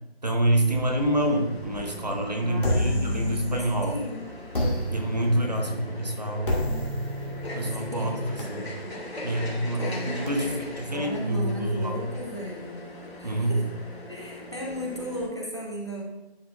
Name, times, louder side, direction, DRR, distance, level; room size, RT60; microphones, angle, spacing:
voice 1, 0.2-4.0 4.9-7.0 7.5-8.7 9.2-12.0 13.2-13.7, right 1 dB, 40° right, 2 dB, 1.0 m, -27 dB
sound 1, 0.6-15.3, left 1 dB, 75° left, 2.6 m, -40 dB
voice 2, 2.4-4.3 7.6-8.2 9.7-10.2 10.9-12.7 13.2-13.7 14.1-16.0, equal, 25° left, -2 dB, 0.9 m, -35 dB
sound 2, 2.6-4.0 4.5-10.3, equal, 55° left, 2.0 m, -31 dB
10.5 x 5.4 x 2.5 m, 1.0 s
figure-of-eight pair, 175°, 32 cm